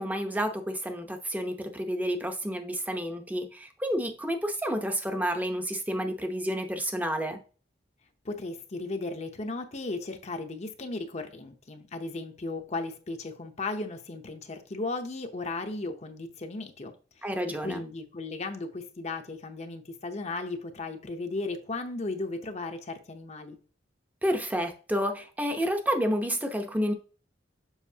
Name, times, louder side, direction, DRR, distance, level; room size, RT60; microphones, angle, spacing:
voice 1, 0.0-7.4 17.2-17.8 24.2-26.9, equal, 10° right, 0.8 m, -30 dB
voice 2, 8.2-23.6, left 3 dB, 40° left, 0.8 m, -36 dB
7.2 x 5.2 x 2.8 m
head